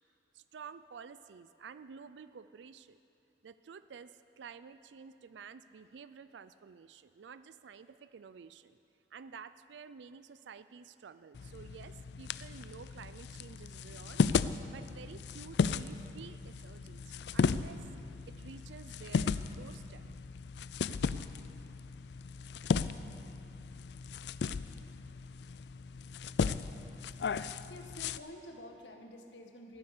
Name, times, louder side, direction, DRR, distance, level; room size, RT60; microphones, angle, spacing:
voice 1, 0.3-3.0 3.4-8.8 9.1-14.2 14.7-17.9 18.3-20.1, right 6 dB, 80° right, 13 dB, 0.4 m, -51 dB
sound 1, 11.3-28.2, left 5 dB, 65° left, 0.4 m, -35 dB
voice 2, 27.7-29.8, left 1 dB, 90° left, 3 dB, 1.7 m, -49 dB
15.0 x 13.5 x 6.7 m, 2.8 s
head